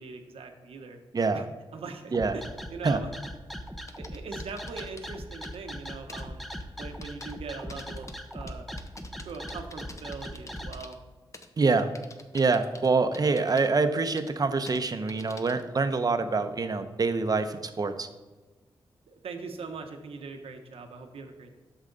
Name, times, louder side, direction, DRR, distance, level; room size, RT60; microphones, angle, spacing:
voice 1, 0.0-1.0 1.3-1.4 1.7-2.4 2.7-3.1 4.0-6.4 6.8-8.1 8.3-8.6 9.2-11.0 19.1-21.6, right 4 dB, 80° right, 5 dB, 1.0 m, -41 dB
voice 2, 1.1-1.5 2.1-2.4 2.8-3.0 11.6-11.9 12.3-18.1, right 4 dB, 40° right, 9 dB, 0.8 m, -25 dB
sound 1, 2.1-10.7, equal, ahead, 0.8 m, -39 dB
sound 2, 3.7-5.1 5.4-5.6 6.1-6.2 6.5-6.6 7.0-7.3 7.7-10.9 11.3-12.9 13.1-13.7 14.2-14.3 14.7-14.8 15.1-15.6, left 2 dB, 35° left, 0.8 m, -47 dB
8.4 x 6.3 x 4.0 m, 1.2 s
cardioid pair, 70°, 10 cm